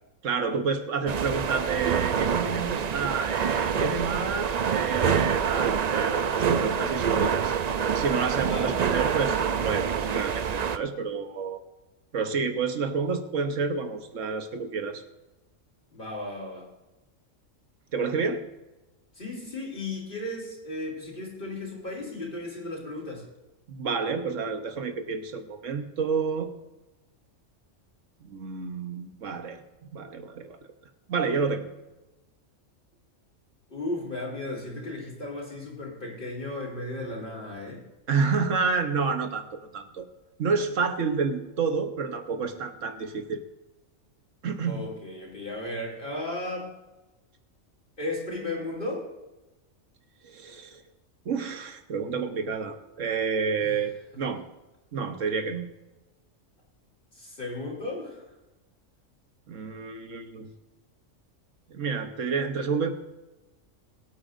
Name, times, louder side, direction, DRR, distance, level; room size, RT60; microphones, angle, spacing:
voice 1, 0.2-7.5 7.9-11.6 12.1-15.0 17.9-18.5 23.7-26.5 28.2-29.6 29.9-30.6 31.1-31.7 38.1-40.1 40.4-43.4 44.4-44.9 50.2-50.8 51.2-54.4 54.9-55.7 59.5-60.5 61.7-62.9, right 5 dB, 75° right, 7 dB, 1.4 m, -29 dB
sound 1, 1.1-10.8, right 7 dB, 55° right, 0.4 m, -26 dB
voice 2, 8.4-9.0 15.9-16.7 19.1-23.3 33.7-37.8 44.6-46.7 48.0-49.1 53.6-53.8 57.1-58.2, left 2 dB, 40° left, -2 dB, 3.6 m, -35 dB
22.0 x 9.0 x 2.6 m, 1.1 s
omnidirectional pair, 1.3 m